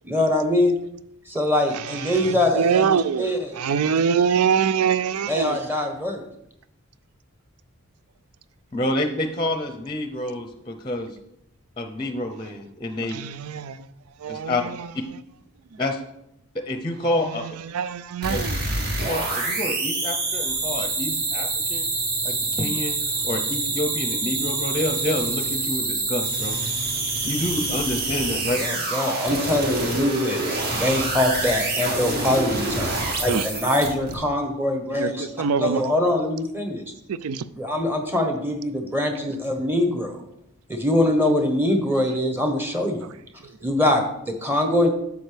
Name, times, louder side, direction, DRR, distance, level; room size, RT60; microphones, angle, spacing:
voice 1, 0.0-0.7 1.3-3.7 5.3-6.3 28.6-36.8 37.5-40.2 40.7-43.1 43.6-44.9, left 1 dB, 10° right, 1.1 m, -23 dB
voice 2, 1.7-3.3 3.6-5.6 13.1-13.8 14.2-14.9 17.7-18.6 33.3-33.5 35.0-35.8 37.1-37.4, right 6 dB, 85° right, 0.4 m, -24 dB
voice 3, 8.7-11.1 11.8-13.2 14.3-14.6 15.8-16.0 16.5-17.4 18.3-18.4 19.1-21.9 22.2-22.9 23.2-26.6 27.2-28.6, left 1 dB, 20° left, 0.7 m, -28 dB
sound 1, 18.2-34.1, right 2 dB, 45° right, 2.0 m, -26 dB
10.5 x 7.0 x 3.4 m
head